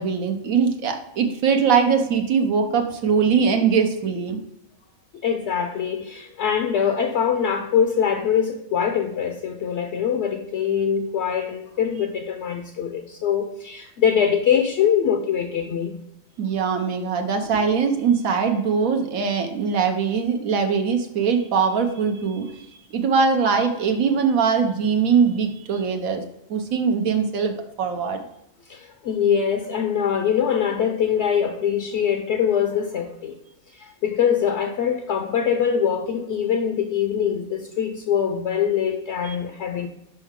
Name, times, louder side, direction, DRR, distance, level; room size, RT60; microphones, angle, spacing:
voice 1, 0.0-4.4 16.4-22.6 22.9-26.2 26.5-28.2 39.2-39.4, right 6 dB, 85° right, 1.3 m, -21 dB
voice 2, 5.2-16.0 28.7-33.4 33.7-39.9, left 8 dB, 65° left, 0.8 m, -23 dB
6.0 x 5.5 x 3.6 m
omnidirectional pair, 1.4 m